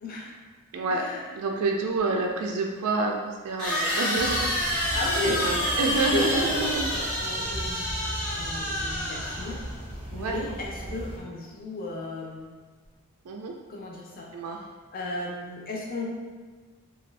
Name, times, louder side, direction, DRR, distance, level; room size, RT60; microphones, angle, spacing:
voice 1, 0.0-0.4 0.9-1.3 2.1-2.2 4.9-5.8 6.1-9.6 10.1-12.5 13.7-14.3 14.9-16.1, left 2 dB, 40° left, -2 dB, 0.5 m, -35 dB
voice 2, 0.7-1.0 1.3-6.9 10.1-10.4 10.8-11.0 13.3-13.6 14.3-14.6, right 3 dB, 75° right, 1 dB, 0.3 m, -28 dB
sound 1, 2.0-2.1 3.6-9.7, equal, 65° left, 1.0 m, -28 dB
sound 2, 4.1-11.2, right 1 dB, 25° right, 0.6 m, -38 dB
2.5 x 2.3 x 3.2 m, 1.4 s
head